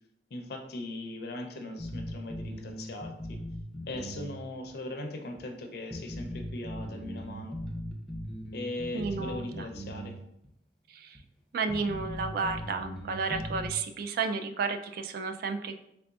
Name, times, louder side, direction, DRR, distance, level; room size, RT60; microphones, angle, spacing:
voice 1, 0.3-3.4 3.9-7.6 8.5-10.2, left 2 dB, 60° left, 3 dB, 0.5 m, -39 dB
sound 1, 1.8-4.4 4.7-4.8 5.4-5.5 5.9-10.2 10.4-10.5 11.2-11.3 11.7-13.7, equal, ahead, 0.6 m, -39 dB
voice 2, 8.9-9.7 10.9-11.2 11.5-15.7, right 4 dB, 60° right, 7 dB, 0.3 m, -32 dB
3.7 x 3.3 x 2.3 m, 0.79 s
head